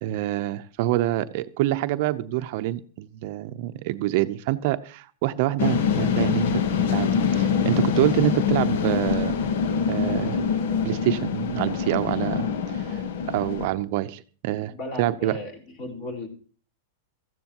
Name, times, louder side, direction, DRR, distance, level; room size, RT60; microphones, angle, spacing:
voice 1, 0.0-6.6 6.9-9.4 9.9-10.4 10.8-13.0 13.3-15.4, right 14 dB, 55° right, 12 dB, 0.7 m, -26 dB
sound 1, 5.6-13.7, left 6 dB, 70° left, 1.2 m, -24 dB
voice 2, 14.7-16.3, left 1 dB, 40° left, 0 dB, 4.1 m, -35 dB
16.5 x 14.0 x 3.0 m, 0.40 s
hypercardioid pair, 135°, 0 cm